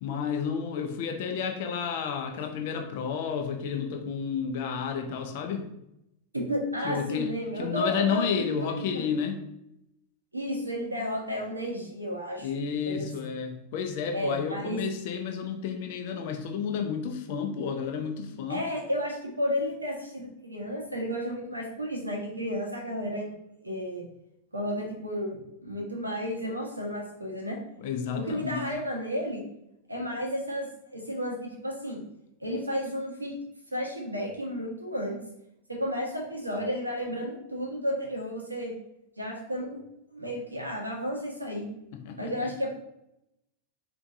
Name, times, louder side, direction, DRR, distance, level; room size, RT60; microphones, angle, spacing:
voice 1, 0.0-5.7 6.8-7.3 7.6-9.4 12.4-18.6 27.8-28.7 42.0-42.5, left 6 dB, 50° left, 4 dB, 0.6 m, -31 dB
voice 2, 6.3-9.1 10.3-13.3 14.1-14.8 18.5-23.3 23.6-24.0 24.5-27.6 28.1-29.4 29.9-32.0 32.4-33.4 33.7-35.2 35.7-38.7 39.2-39.8 40.1-41.7 42.2-42.7, equal, 85° right, 0 dB, 1.1 m, -32 dB
4.6 x 3.5 x 2.7 m, 0.83 s
figure-of-eight pair, 90°, 0 cm